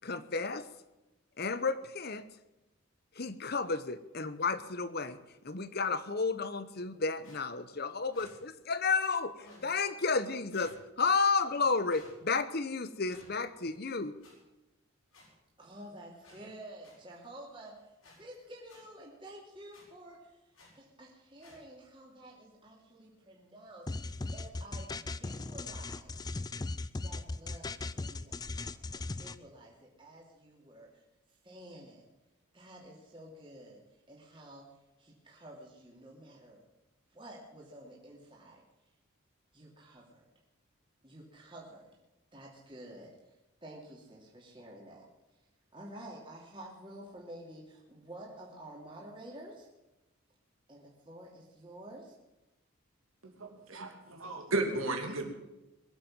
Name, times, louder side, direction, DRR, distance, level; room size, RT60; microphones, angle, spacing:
voice 1, 0.0-0.7 1.4-2.2 3.2-5.2 5.4-14.1, left 4 dB, 50° left, 13 dB, 0.9 m, -32 dB
sound 1, 7.2-7.4 8.1-8.3 9.3-9.7 10.5-10.8 11.9-12.1 13.0-13.3 14.2-14.3 15.1-15.2 16.2-16.4 16.8-16.9 18.0-18.2 18.7-18.8 19.7-19.8 20.5-20.7 21.4-21.6, left 2 dB, 85° left, 7.4 m, -56 dB
voice 2, 15.6-26.2 27.0-31.0 31.4-32.1 32.5-33.8 34.1-34.7 35.0-36.6 37.1-38.6 39.5-40.2 41.0-41.9 42.3-43.1 43.6-45.1 45.7-49.7 50.7-52.1, right 1 dB, 25° right, -3 dB, 2.8 m, -50 dB
sound 2, 23.9-29.4, left 3 dB, 20° left, 0.4 m, -38 dB
voice 3, 53.4-55.3, right 2 dB, 75° right, 3 dB, 2.8 m, -34 dB
22.0 x 7.7 x 7.4 m, 1.0 s
head